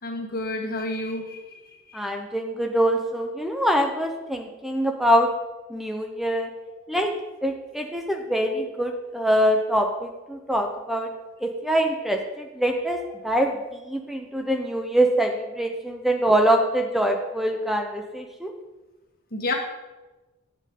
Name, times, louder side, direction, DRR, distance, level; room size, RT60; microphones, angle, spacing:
voice 1, 0.0-1.6 1.9-2.0 19.3-19.5, left 2 dB, 45° left, 1 dB, 1.6 m, -30 dB
voice 2, 1.9-5.3 5.7-6.5 6.9-7.1 7.4-11.1 11.4-18.5, right 1 dB, ahead, 3 dB, 0.7 m, -24 dB
12.5 x 7.7 x 3.8 m, 1.1 s
head